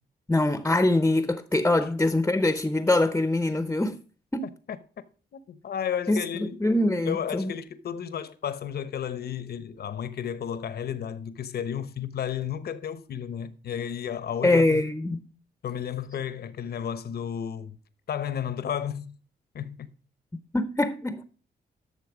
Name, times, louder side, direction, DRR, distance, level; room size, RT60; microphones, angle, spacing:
voice 1, 0.3-4.0 4.3-4.5 6.1-6.2 6.6-7.5 14.4-15.2 20.5-21.2, left 2 dB, 10° left, 0.7 m, -23 dB
voice 2, 5.3-6.7 7.0-14.8 15.6-17.8 18.1-19.1 19.5-19.9, left 8 dB, 65° left, 1.0 m, -33 dB
12.5 x 6.6 x 5.0 m
cardioid pair, 85°, 18 cm